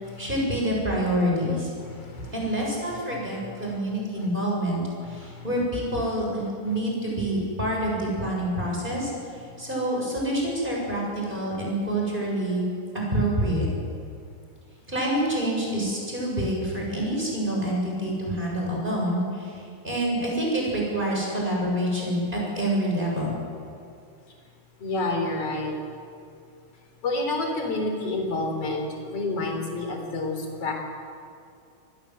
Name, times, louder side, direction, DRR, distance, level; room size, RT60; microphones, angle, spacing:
voice 1, 0.2-1.7 2.1-9.1 9.6-12.7 13.1-13.7 14.9-23.3, right 1 dB, 10° right, -2 dB, 7.3 m, -27 dB
voice 2, 1.8-2.3 3.1-3.2 3.5-3.8 5.0-5.5 6.7-6.8 9.5-9.6 24.8-25.8 27.0-30.7, left 2 dB, 40° left, 3 dB, 4.7 m, -29 dB
26.0 x 19.5 x 8.0 m, 2.4 s
omnidirectional pair, 4.2 m